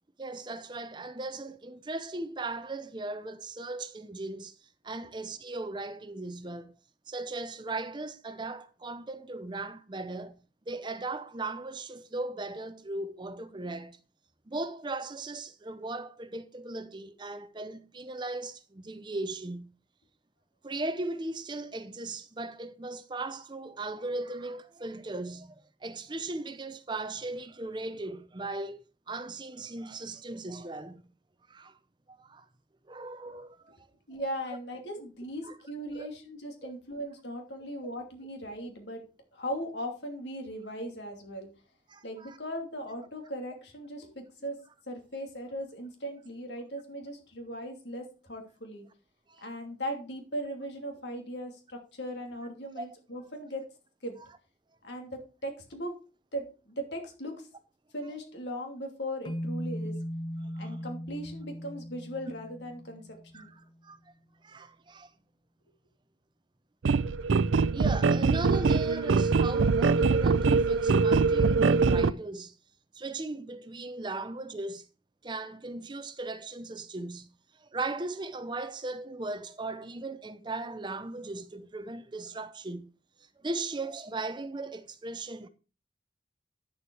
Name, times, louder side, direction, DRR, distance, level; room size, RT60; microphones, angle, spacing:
voice 1, 0.2-6.7 7.1-10.4 10.7-14.0 14.5-19.7 20.6-31.1 31.5-31.8 32.1-32.5 32.9-33.8 35.4-35.5 35.9-36.1 36.6-36.7 41.9-42.4 49.3-49.4 52.8-52.9 60.4-60.8 63.3-64.0 64.4-65.1 67.7-72.5 72.9-74.9 75.2-82.9 83.4-85.5, right 2 dB, 25° right, 0.6 m, -38 dB
voice 2, 34.1-39.1 39.3-41.5 42.0-44.6 44.9-48.9 49.4-53.7 54.0-54.2 54.8-56.0 56.3-57.5 57.9-60.0 60.6-63.5, equal, 70° left, 2.8 m, -38 dB
sound 1, 59.2-63.5, equal, 25° left, 0.6 m, -38 dB
sound 2, 66.8-72.1, right 4 dB, 85° right, 0.5 m, -23 dB
9.4 x 7.2 x 4.7 m
head